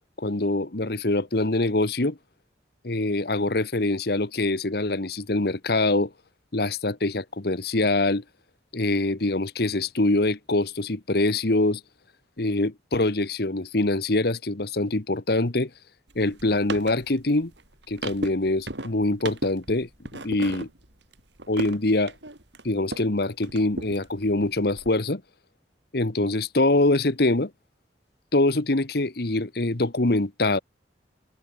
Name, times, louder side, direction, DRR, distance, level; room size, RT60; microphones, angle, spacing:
voice 1, 0.2-2.2 2.8-6.1 6.5-8.2 8.7-11.8 12.4-15.7 16.1-17.5 17.9-20.7 21.5-22.1 22.6-25.2 25.9-27.5 28.3-30.6, left 2 dB, 60° left, 1.4 m, -24 dB
sound 1, 16.1-23.1 23.4-24.9, right 2 dB, 90° right, 5.7 m, -37 dB
open air
head